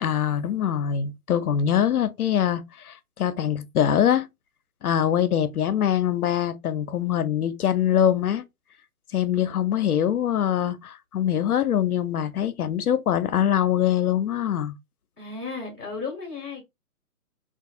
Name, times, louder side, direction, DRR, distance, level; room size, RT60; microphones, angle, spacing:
voice 1, 0.0-4.3 4.8-8.4 9.1-14.7, left 9 dB, 70° left, 0.6 m, -23 dB
voice 2, 15.2-16.6, left 4 dB, 10° right, 0.5 m, -34 dB
2.4 x 2.3 x 2.6 m
figure-of-eight pair, 135°, 46 cm